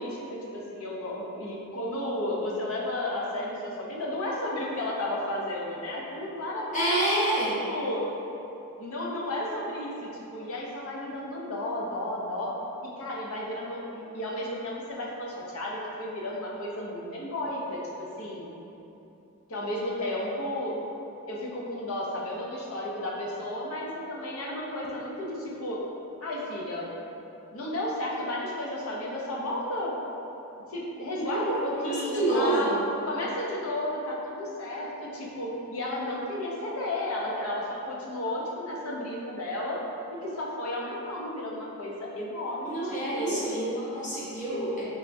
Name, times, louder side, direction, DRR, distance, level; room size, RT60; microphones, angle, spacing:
voice 1, 0.0-7.4 7.7-8.0 8.8-12.5 12.8-18.5 19.5-20.8 21.3-25.8 26.2-26.9 27.5-29.9 30.7-32.8 33.0-39.8 40.1-43.5, left 1 dB, 65° left, -3 dB, 0.6 m, -33 dB
voice 2, 6.7-7.6 31.3-32.8 42.6-44.8, right 1 dB, 35° left, -8 dB, 0.8 m, -28 dB
3.4 x 3.3 x 2.6 m, 3.0 s
head